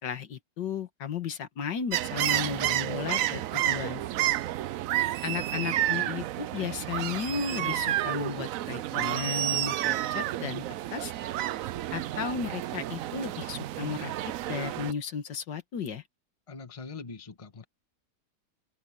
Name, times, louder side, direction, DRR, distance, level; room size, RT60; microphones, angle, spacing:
voice 1, 0.0-4.0 5.2-10.6 10.9-11.1 11.9-14.1 14.5-16.0, left 6 dB, 80° left, 2.1 m, -34 dB
sound 1, 1.9-14.9, right 13 dB, 70° right, 0.8 m, -30 dB
voice 2, 16.5-17.7, left 4 dB, 20° left, 1.2 m, -42 dB
omnidirectional pair, 1.9 m